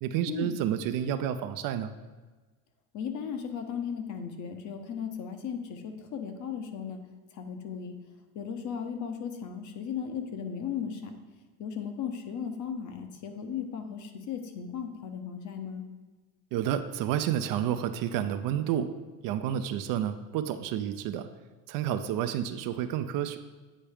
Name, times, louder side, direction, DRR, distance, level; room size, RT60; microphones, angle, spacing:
voice 1, 0.0-1.9 16.5-18.9 19.2-21.3 21.7-23.4, right 10 dB, 50° right, 9 dB, 0.5 m, -30 dB
voice 2, 2.9-7.0 7.3-8.0 8.3-11.2 11.6-15.8, left 7 dB, 45° left, 6 dB, 0.9 m, -36 dB
8.6 x 4.5 x 3.4 m, 1.3 s
supercardioid pair, 105°, 43 cm